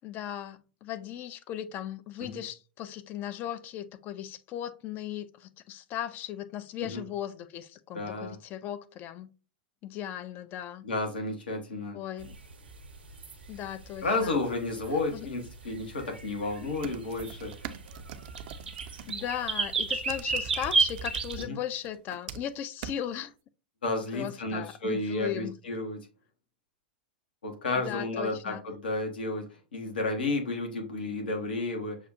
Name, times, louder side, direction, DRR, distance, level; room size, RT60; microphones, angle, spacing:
voice 1, 0.0-9.3 9.8-10.8 11.9-12.4 13.5-14.4 15.1-15.3 19.1-23.3 24.1-25.5 27.7-28.6, left 10 dB, 35° left, 0.4 m, -37 dB
voice 2, 7.9-8.4 10.8-12.0 14.0-17.5 21.5-21.6 23.8-26.0 27.4-32.0, left 2 dB, 75° left, 1.1 m, -32 dB
sound 1, 12.2-21.4, right 4 dB, 80° right, 0.9 m, -32 dB
sound 2, 16.8-19.1 20.1-21.5 21.8-22.5 22.8-23.0, right 8 dB, 50° right, 0.5 m, -42 dB
6.4 x 2.4 x 2.7 m
figure-of-eight pair, 95°, 5 cm